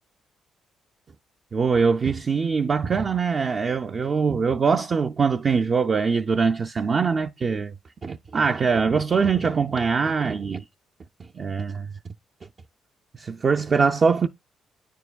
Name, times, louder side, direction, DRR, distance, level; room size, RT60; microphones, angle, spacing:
voice 1, 1.5-7.7 8.0-10.6 11.3-11.9 13.1-14.3, right 5 dB, 40° right, 0.3 m, -23 dB
9.3 x 4.6 x 2.3 m
cardioid pair, 90°, 0 cm